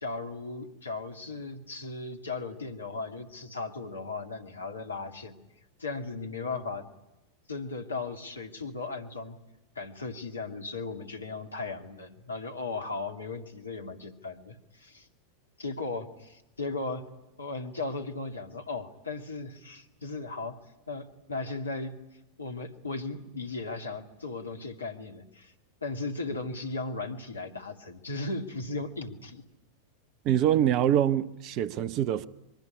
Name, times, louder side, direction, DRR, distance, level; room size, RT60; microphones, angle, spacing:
voice 1, 0.0-5.4 5.8-6.9 7.5-9.4 9.8-15.1 15.6-17.0 17.4-20.6 20.9-21.9 22.4-25.5 25.8-29.4, left 3 dB, 75° left, 2.4 m, -36 dB
voice 2, 30.2-32.3, right 10 dB, 40° right, 0.9 m, -25 dB
25.0 x 22.5 x 10.0 m
figure-of-eight pair, 90°, 0 cm